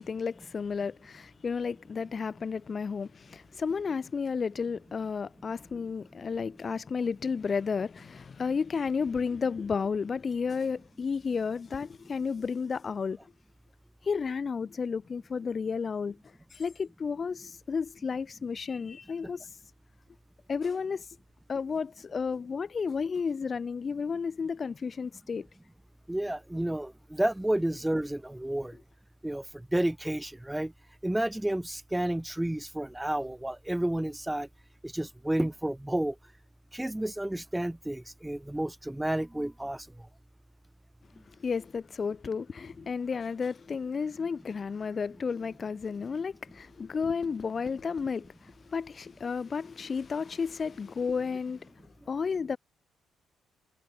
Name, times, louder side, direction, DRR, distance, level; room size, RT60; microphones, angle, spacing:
voice 1, 0.0-13.2 14.0-16.2 16.5-19.5 20.5-21.1 21.5-25.5 41.3-51.7 52.0-52.6, left 5 dB, 40° left, 0.8 m, -32 dB
voice 2, 26.1-28.8 29.2-29.5 29.7-30.7 31.0-34.5 34.8-36.2 36.7-39.9, right 1 dB, 5° right, 0.4 m, -31 dB
cardioid pair, 90°, 0 cm